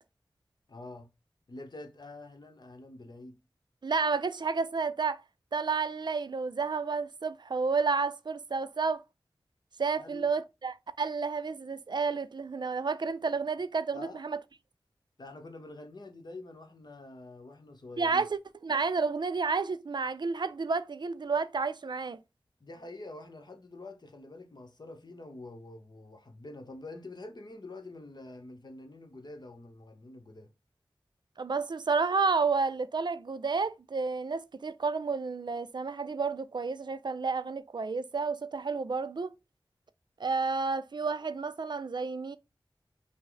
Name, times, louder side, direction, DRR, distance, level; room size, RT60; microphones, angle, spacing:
voice 1, 0.7-1.1 1.5-3.3 10.0-10.3 13.9-14.3 15.2-18.3 22.6-30.5, left 2 dB, 55° left, 0.9 m, -46 dB
voice 2, 3.8-5.2 5.5-9.0 9.8-14.4 18.0-22.2 31.4-39.3 40.2-42.4, right 4 dB, 60° right, 0.4 m, -31 dB
5.3 x 2.1 x 3.9 m
wide cardioid pair, 75°, 9 cm